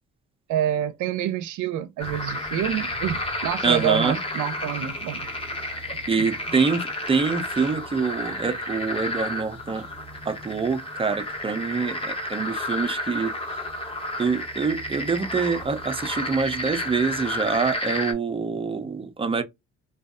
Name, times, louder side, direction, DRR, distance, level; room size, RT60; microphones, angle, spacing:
voice 1, 0.5-5.3 6.1-6.3, right 10 dB, 80° right, 0.5 m, -27 dB
sound 1, 2.0-18.1, left 1 dB, 20° left, 0.8 m, -31 dB
voice 2, 3.6-4.2 6.1-9.9 10.3-13.6 14.2-19.4, right 5 dB, 20° right, 0.5 m, -25 dB
2.5 x 2.3 x 2.3 m
cardioid pair, 90°, 30 cm